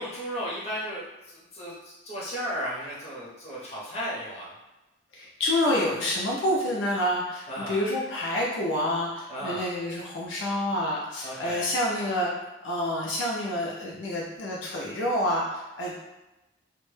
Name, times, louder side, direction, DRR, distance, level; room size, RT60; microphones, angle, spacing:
voice 1, 0.0-4.6 7.5-7.8 9.3-9.7 11.2-11.7, equal, 35° left, -7 dB, 0.7 m, -35 dB
voice 2, 5.1-12.3 12.6-16.0, left 1 dB, 70° left, -4 dB, 0.4 m, -28 dB
2.1 x 2.0 x 3.1 m, 1.0 s
head